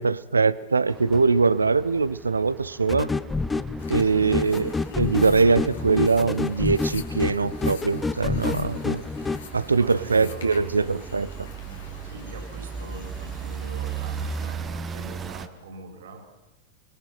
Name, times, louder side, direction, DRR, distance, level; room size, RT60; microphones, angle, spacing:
voice 1, 0.0-3.1 3.9-4.7 5.0-9.0 9.5-11.3, right 4 dB, 75° right, 18 dB, 0.8 m, -22 dB
sound 1, 0.9-15.5, right 6 dB, 20° right, 1.4 m, -38 dB
sound 2, 2.9-9.4, left 3 dB, 10° left, 0.8 m, -28 dB
sound 3, 3.8-14.5, left 7 dB, 65° left, 3.0 m, -47 dB
voice 2, 3.9-4.4 9.7-11.1 12.0-16.3, right 3 dB, 60° right, 5 dB, 4.5 m, -43 dB
28.0 x 22.0 x 5.8 m, 1.0 s
figure-of-eight pair, 90°, 0 cm